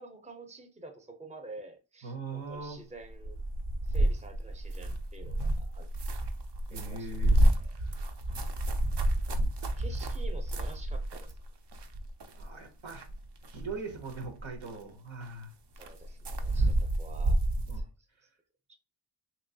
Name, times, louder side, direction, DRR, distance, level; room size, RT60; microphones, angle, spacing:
voice 1, 0.0-3.4 3.8-5.9 6.7-7.1 7.6-7.7 9.8-11.4 15.8-17.4 17.7-17.9 18.7-18.8, right 3 dB, 15° right, 0.6 m, -48 dB
voice 2, 2.0-2.8 6.7-7.4 7.8-7.9 8.3-8.5 12.3-13.1 13.5-15.5 16.5-16.7 17.7-17.9, right 3 dB, 85° right, 1.0 m, -41 dB
sound 1, 3.1-11.5 11.7-12.5 12.9-13.8 14.0-14.7 15.2-15.3 15.8-17.8, right 1 dB, 60° right, 0.6 m, -29 dB
3.0 x 3.0 x 2.6 m
wide cardioid pair, 65°, 47 cm